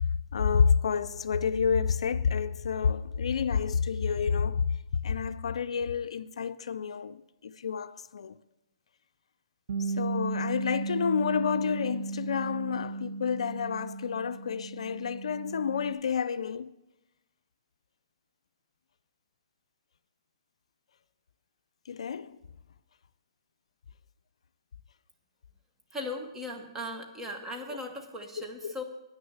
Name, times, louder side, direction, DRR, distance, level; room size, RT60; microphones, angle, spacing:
voice 1, 0.3-4.7 5.0-8.3 9.8-16.7 21.9-22.3 28.6-28.7, left 6 dB, 80° left, 0.4 m, -29 dB
Bass guitar, 9.7-15.9, right 3 dB, 65° right, 0.7 m, -35 dB
voice 2, 25.9-28.8, left 1 dB, 10° right, 1.2 m, -38 dB
9.5 x 6.3 x 7.2 m
hypercardioid pair, 145°, 3 cm